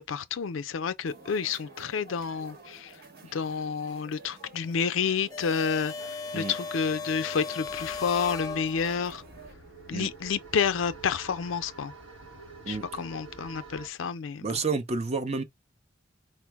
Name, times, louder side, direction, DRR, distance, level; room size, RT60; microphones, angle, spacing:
voice 1, 0.0-2.9 3.3-5.9 6.3-9.2 9.9-11.9 12.7-14.5, left 6 dB, 75° left, 0.4 m, -29 dB
sound 1, 1.1-9.5, right 3 dB, 50° right, 1.0 m, -50 dB
sound 2, 5.3-9.2, left 4 dB, 20° left, 0.5 m, -37 dB
sound 3, 7.6-13.9, right 3 dB, 75° right, 0.9 m, -48 dB
voice 2, 14.4-15.4, right 4 dB, 35° right, 0.5 m, -30 dB
4.4 x 2.0 x 4.5 m
head